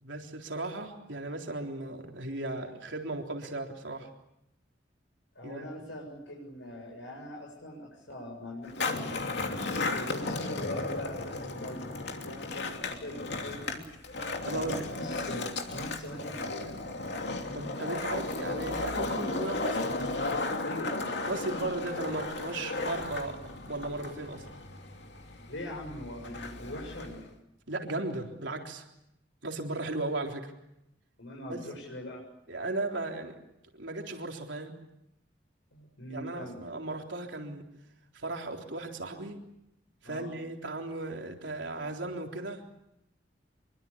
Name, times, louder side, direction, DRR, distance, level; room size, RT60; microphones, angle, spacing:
voice 1, 0.0-4.1 5.4-5.7 14.4-14.8 17.5-20.0 21.2-24.5 27.7-28.9 29.4-30.5 31.5-31.6 32.5-33.4 33.7-34.8 36.1-37.7 38.1-39.4 40.0-42.6, right 2 dB, 85° right, 2 dB, 3.7 m, -36 dB
voice 2, 5.3-9.4 9.9-11.8 12.2-13.8 14.5-17.1 20.6-21.0 25.5-27.3 31.2-32.2 35.7-36.6 40.0-40.3, left 1 dB, 85° left, -1 dB, 7.3 m, -42 dB
Skateboard, 8.6-27.3, left 2 dB, 65° left, 2.9 m, -35 dB
25.5 x 23.5 x 8.6 m, 0.82 s
head